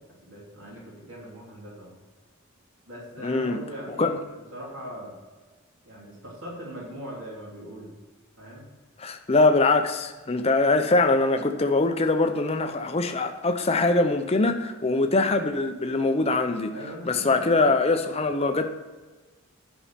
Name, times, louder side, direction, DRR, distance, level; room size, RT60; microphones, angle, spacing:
voice 1, 0.2-1.9 2.8-5.1 5.8-7.9 8.4-8.7 16.7-18.2, equal, 65° right, -4 dB, 3.1 m, -41 dB
voice 2, 3.2-3.6 4.0-4.1 9.0-16.7 17.1-18.7, left 3 dB, 30° left, 6 dB, 0.7 m, -23 dB
10.0 x 5.6 x 7.3 m, 1.3 s
head